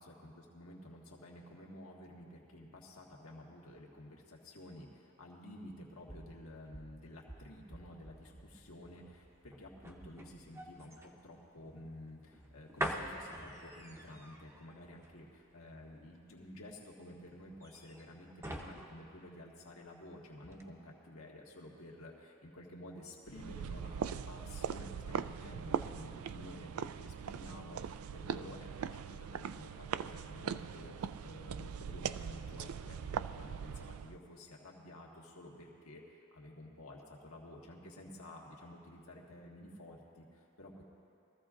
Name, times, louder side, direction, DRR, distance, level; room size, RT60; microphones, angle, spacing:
voice 1, 0.0-40.8, left 1 dB, 75° left, -2 dB, 1.7 m, -52 dB
sound 1, 5.7-20.1 20.4-20.6, right 1 dB, 10° right, 0.7 m, -46 dB
sound 2, 23.3-34.2, right 7 dB, 80° right, 0.4 m, -41 dB
22.0 x 14.5 x 2.5 m, 2.6 s
head